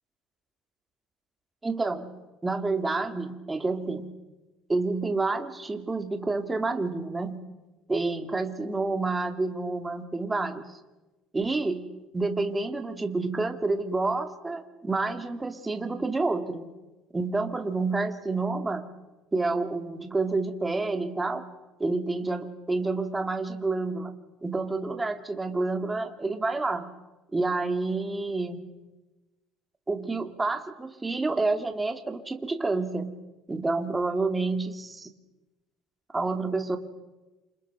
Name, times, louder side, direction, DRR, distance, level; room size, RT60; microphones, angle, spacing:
voice 1, 1.6-4.1 4.7-7.4 7.9-10.8 11.3-16.7 17.1-18.9 19.3-21.5 21.8-24.1 24.4-26.9 27.3-28.6 29.9-33.1 33.5-35.1 36.1-36.8, right 3 dB, 15° right, 6 dB, 2.5 m, -29 dB
28.5 x 27.5 x 6.2 m, 1.1 s
cardioid pair, 130°, 0 cm